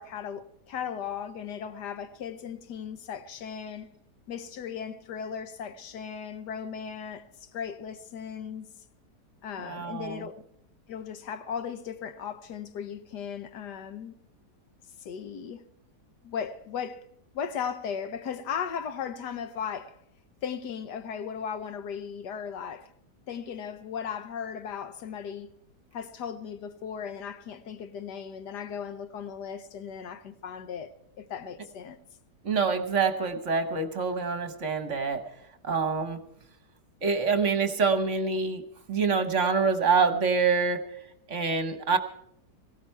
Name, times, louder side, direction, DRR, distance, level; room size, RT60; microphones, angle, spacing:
voice 1, 0.0-3.9 4.3-8.7 9.4-10.4 10.9-14.1 15.0-15.6 16.2-17.0 17.3-20.0 20.4-22.9 23.3-25.5 25.9-32.0, left 7 dB, 75° left, 1.5 m, -37 dB
voice 2, 9.6-10.2 32.4-35.2 35.6-36.2 37.0-38.6 38.9-40.8 41.3-42.0, right 5 dB, 50° right, 1.3 m, -26 dB
17.5 x 17.0 x 4.5 m
omnidirectional pair, 1.8 m